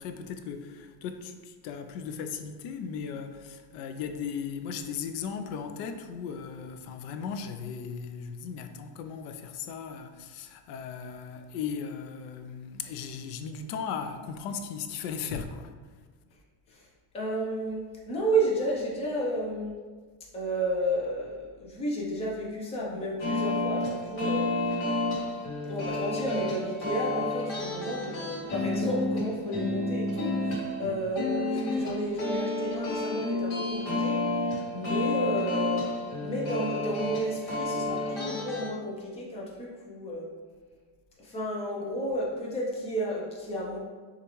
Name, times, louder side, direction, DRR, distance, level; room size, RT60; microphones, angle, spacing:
voice 1, 0.0-15.7 30.8-31.0, left 6 dB, 85° left, 0.6 m, -37 dB
voice 2, 17.1-19.7 20.3-24.8 25.7-34.4 34.7-35.9 36.2-40.3 41.2-43.8, right 1 dB, 15° left, 0.5 m, -32 dB
sound 1, 23.2-38.7, left 2 dB, 50° left, 1.2 m, -30 dB
6.4 x 2.5 x 3.0 m
cardioid pair, 170°, 47 cm